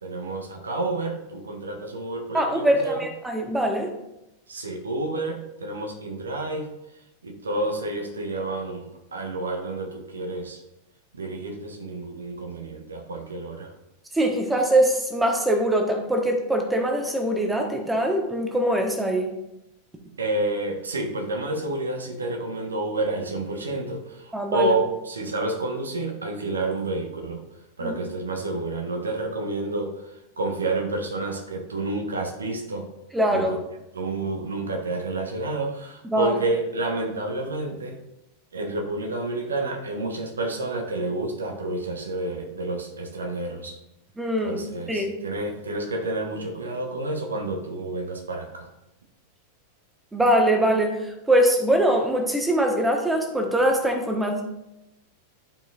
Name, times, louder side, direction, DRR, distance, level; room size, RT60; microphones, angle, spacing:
voice 1, 0.0-3.0 4.5-6.7 7.2-10.6 11.1-13.7 20.2-27.4 27.8-32.9 33.3-33.6 33.9-38.0 38.5-43.7 44.4-48.7, right 2 dB, 75° right, 3 dB, 1.1 m, -29 dB
voice 2, 2.3-3.9 14.1-19.3 24.3-24.7 27.8-28.0 33.1-33.6 36.1-36.3 44.2-44.6 44.9-45.1 50.1-54.4, right 1 dB, 10° right, 3 dB, 1.1 m, -22 dB
12.0 x 4.8 x 2.4 m, 0.89 s
figure-of-eight pair, 90°, 0 cm